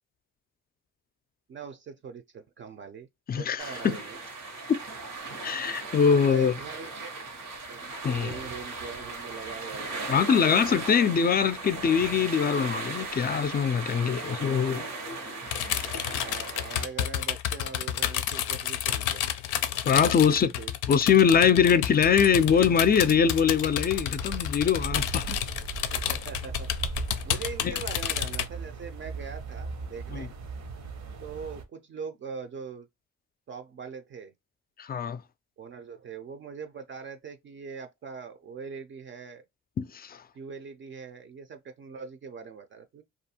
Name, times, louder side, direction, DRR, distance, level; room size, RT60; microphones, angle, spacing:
voice 1, 1.5-3.1 3.3-4.2 6.1-7.1 7.6-10.4 14.0-15.7 16.2-19.2 20.0-20.7 25.9-26.7 27.3-30.3 31.2-32.9 33.5-34.3 35.6-39.4 40.3-43.0, right 6 dB, 40° right, 0.4 m, -42 dB
voice 2, 3.3-4.0 4.7-4.8 5.4-6.5 8.0-8.4 10.1-14.9 19.9-20.5 20.9-25.4 27.6-27.7 30.1-30.3 34.8-35.2 39.8-40.2, left 7 dB, 30° left, 0.4 m, -23 dB
sound 1, 3.6-16.8, right 3 dB, 90° right, 1.1 m, -37 dB
sound 2, 15.5-28.5, left 11 dB, 90° left, 0.5 m, -30 dB
sound 3, 21.9-31.6, right 4 dB, 65° right, 0.8 m, -39 dB
2.6 x 2.4 x 2.8 m
cardioid pair, 90°, 30 cm